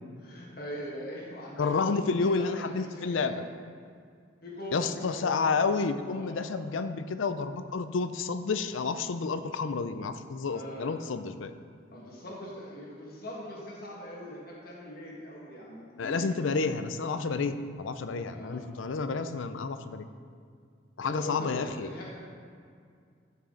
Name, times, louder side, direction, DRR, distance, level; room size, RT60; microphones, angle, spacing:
voice 1, 0.2-3.4 4.4-6.6 10.5-10.9 11.9-16.3 18.3-18.6 21.0-22.1, equal, 50° left, -4 dB, 1.7 m, -42 dB
voice 2, 1.6-3.3 4.7-11.5 16.0-17.5 17.8-20.1 21.0-21.9, left 4 dB, 85° left, 11 dB, 0.5 m, -30 dB
12.5 x 5.9 x 3.9 m, 2.2 s
head